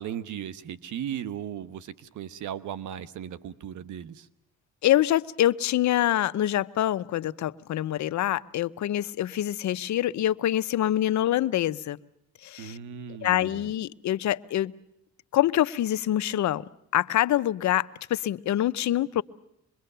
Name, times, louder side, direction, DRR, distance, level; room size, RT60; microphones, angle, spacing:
voice 1, 0.0-4.3 12.6-13.7, right 9 dB, 75° right, 14 dB, 1.2 m, -37 dB
voice 2, 4.8-12.0 12.4-12.8 13.2-14.7 15.3-16.6 16.9-19.2, left 13 dB, 70° left, 15 dB, 0.9 m, -25 dB
25.5 x 22.0 x 6.8 m, 0.80 s
cardioid pair, 90°, 30 cm